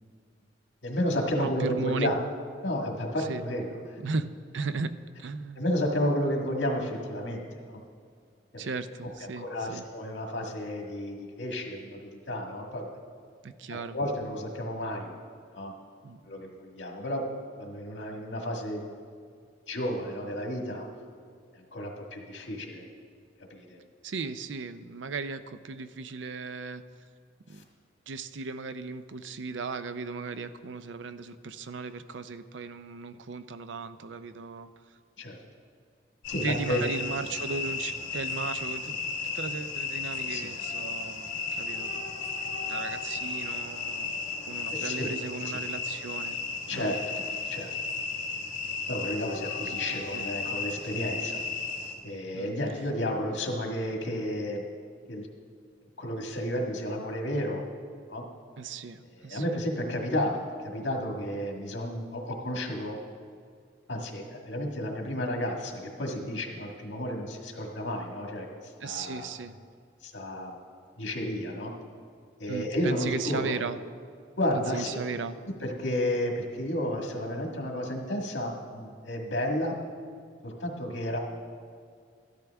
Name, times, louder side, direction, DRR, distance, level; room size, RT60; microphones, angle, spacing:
voice 1, 0.8-2.2 2.6-3.8 5.5-7.8 8.5-8.7 9.2-12.9 13.7-15.1 15.5-15.8 16.2-17.2 17.6-18.9 19.7-20.9 21.5-22.9 23.5-23.8 27.5-27.6 35.2-35.4 36.3-36.8 40.3-40.5 44.7-45.2 45.4-45.6 46.7-47.7 48.9-51.4 52.0-54.6 55.1-55.3 56.0-57.6 58.1-58.2 59.1-63.0 63.9-69.3 70.0-70.6 71.0-71.7 72.4-73.5 74.4-74.9 75.6-79.7 80.4-81.2, left 1 dB, 80° left, 1 dB, 1.7 m, -32 dB
voice 2, 1.4-2.1 3.2-3.4 4.0-4.2 4.5-4.9 5.2-5.6 8.6-9.8 13.4-14.0 16.0-16.2 24.0-26.8 27.5-27.6 28.1-34.7 36.3-39.0 39.3-42.0 42.7-44.2 44.5-46.4 46.7-46.9 49.7-49.8 50.1-50.3 52.3-52.6 58.6-59.4 68.8-69.6 72.5-73.8 74.5-75.4, right 4 dB, 85° right, 11 dB, 0.5 m, -36 dB
sound 1, 36.2-51.9, left 4 dB, 50° left, 2.9 m, -34 dB
13.5 x 12.0 x 3.5 m, 2.1 s
head